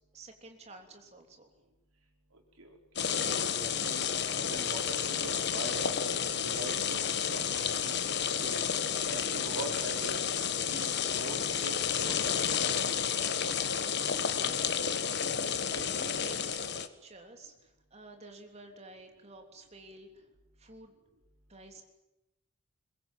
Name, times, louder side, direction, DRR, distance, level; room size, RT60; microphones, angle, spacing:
voice 1, 0.1-1.5 13.9-16.7 17.0-20.3 20.6-20.9 21.5-21.8, right 2 dB, 30° right, 4 dB, 3.3 m, -51 dB
voice 2, 2.6-4.1 4.5-5.9 6.4-8.0 8.4-8.6 9.1-10.2 10.7-12.3, right 2 dB, 85° right, 2 dB, 5.0 m, -43 dB
sound 1, 3.0-16.9, left 7 dB, 50° left, 1.3 m, -31 dB
22.0 x 21.5 x 9.2 m, 0.94 s
head